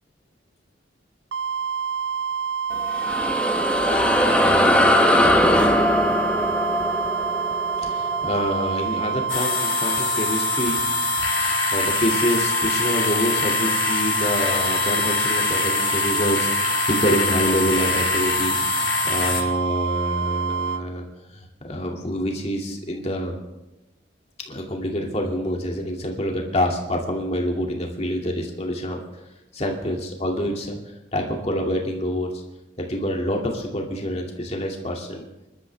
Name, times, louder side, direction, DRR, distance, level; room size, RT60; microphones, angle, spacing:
sound 1, 1.3-20.8, right 7 dB, 65° right, 0.4 m, -27 dB
sound 2, 2.7-9.5, left 1 dB, 5° left, 1.0 m, -21 dB
voice 1, 3.9-4.2 7.8-11.2 11.7-21.0 21.3-23.4 24.5-29.0 29.5-30.8 31.1-32.3 32.8-35.2, equal, 35° left, 0 dB, 2.4 m, -26 dB
sound 3, 9.3-19.4, left 6 dB, 85° left, 2.6 m, -25 dB
25.5 x 12.5 x 3.5 m, 0.97 s
head